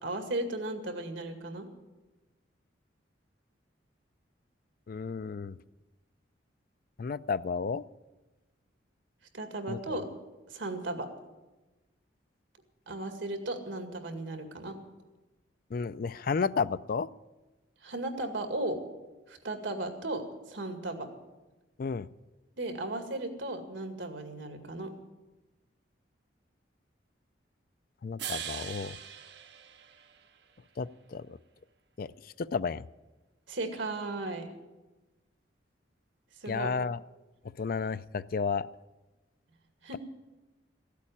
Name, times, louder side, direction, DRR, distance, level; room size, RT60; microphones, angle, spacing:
voice 1, 0.0-1.7 9.3-10.1 10.5-11.1 12.9-14.8 17.8-18.8 19.3-21.1 22.6-24.9 33.5-34.5 36.4-36.7 39.8-40.0, right 2 dB, 80° right, 6 dB, 2.2 m, -35 dB
voice 2, 4.9-5.6 7.0-7.8 9.7-10.0 15.7-17.1 21.8-22.1 28.0-29.0 30.8-31.4 32.0-32.1 32.4-32.8 36.5-37.0 37.6-38.7, left 5 dB, 50° left, 16 dB, 0.4 m, -32 dB
sound 1, 28.2-30.5, right 9 dB, 65° right, 0.9 m, -41 dB
15.5 x 8.4 x 9.9 m, 1.1 s
head